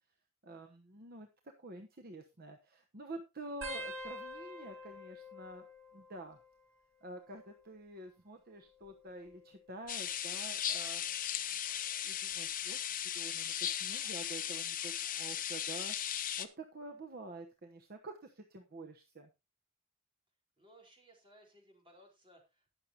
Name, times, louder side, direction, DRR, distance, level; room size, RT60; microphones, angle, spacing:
voice 1, 0.4-1.3 1.6-5.7 5.9-6.4 7.0-11.0 11.5-11.6 12.0-19.3, right 2 dB, 45° right, 5 dB, 1.0 m, -48 dB
sound 1, 3.6-6.8 7.1-7.7 8.7-10.1 10.8-11.1 12.3-12.7 14.2-14.3, equal, 75° right, 5.8 m, -48 dB
sound 2, 9.9-16.5, left 10 dB, 40° left, 0.8 m, -37 dB
voice 2, 20.6-22.7, right 1 dB, 25° right, 0 dB, 4.2 m, -61 dB
20.0 x 6.7 x 2.9 m, 0.26 s
head